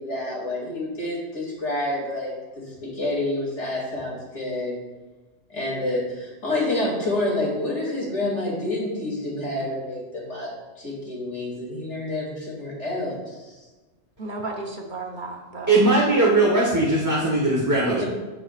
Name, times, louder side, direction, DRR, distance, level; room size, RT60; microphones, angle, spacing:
voice 1, 0.0-4.7 5.5-10.5 10.8-13.5 18.0-18.1, left 1 dB, 75° left, -4 dB, 2.9 m, -28 dB
voice 2, 14.2-15.8 17.8-18.0, right 3 dB, 45° right, 1 dB, 1.1 m, -33 dB
voice 3, 15.7-18.0, right 2 dB, 15° right, -5 dB, 0.9 m, -19 dB
14.0 x 5.0 x 2.4 m, 1.2 s
omnidirectional pair, 1.2 m